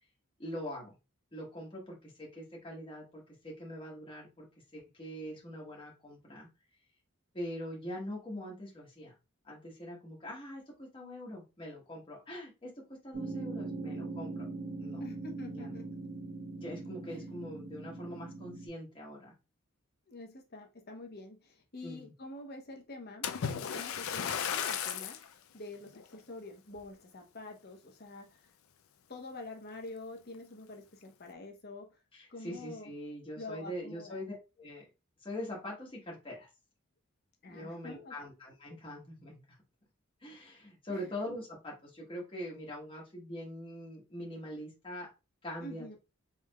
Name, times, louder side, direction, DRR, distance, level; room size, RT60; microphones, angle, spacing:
voice 1, 0.4-0.9 1.3-4.5 4.7-6.5 7.3-9.1 9.4-14.5 14.8-15.0 15.5-15.7 16.6-19.3 21.8-22.1 32.1-34.9 35.2-36.5 37.5-39.6 40.2-45.1 45.4-45.9, equal, 25° left, -3 dB, 1.2 m, -43 dB
sound 1, 13.1-18.7, right 3 dB, 50° right, 2.1 m, -41 dB
voice 2, 15.0-16.1 17.1-17.3 20.1-23.3 23.6-25.2 25.5-28.4 29.1-32.0 32.3-32.9 33.4-34.2 37.4-38.1 40.9-41.1 45.6-46.0, left 2 dB, 50° left, 3 dB, 1.0 m, -46 dB
Splash splatter, 23.2-25.3 25.9-26.2 26.8-26.9, left 8 dB, 80° left, 0.5 m, -35 dB
4.5 x 3.5 x 2.3 m, 0.27 s
head